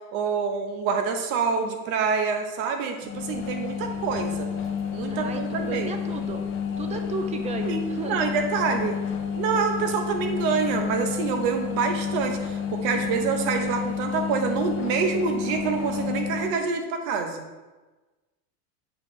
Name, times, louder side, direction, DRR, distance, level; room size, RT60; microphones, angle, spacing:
voice 1, 0.1-4.5 4.9-5.9 7.7-9.0 9.3-17.5, right 5 dB, 55° right, 5 dB, 1.0 m, -26 dB
sound 1, 3.0-16.6, left 7 dB, 30° left, 0.6 m, -30 dB
voice 2, 5.1-6.4 6.8-8.2, right 4 dB, 15° right, 6 dB, 0.4 m, -34 dB
7.2 x 4.4 x 3.2 m, 1.2 s
supercardioid pair, 125°, 42 cm